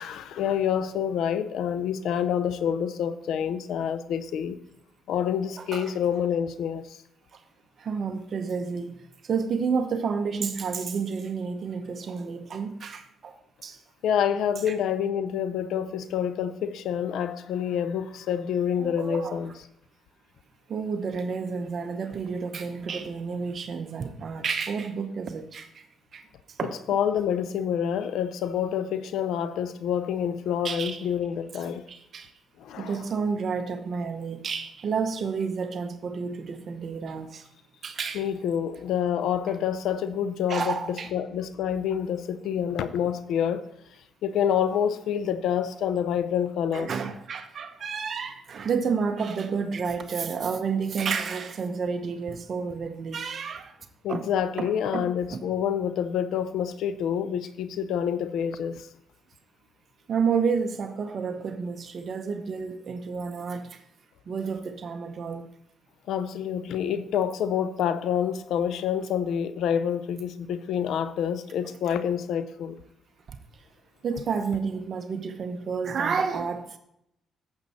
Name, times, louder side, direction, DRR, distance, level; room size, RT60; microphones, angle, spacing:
voice 1, 0.0-4.6 5.1-7.0 14.0-19.5 26.6-31.8 32.6-33.0 38.1-43.6 44.2-46.9 54.0-58.9 66.1-72.8, left 8 dB, 80° left, 0.6 m, -27 dB
voice 2, 7.8-13.3 13.6-13.8 14.7-14.8 18.8-19.4 20.7-25.9 26.1-26.3 26.6-26.8 30.6-31.1 31.9-32.3 32.8-37.5 37.8-38.2 40.5-41.1 46.7-53.8 54.1-54.2 54.6-55.0 55.3-55.4 60.1-63.8 64.3-65.5 74.0-76.8, right 5 dB, 50° right, 0.8 m, -30 dB
8.9 x 7.2 x 4.2 m
cardioid pair, 90°, 0 cm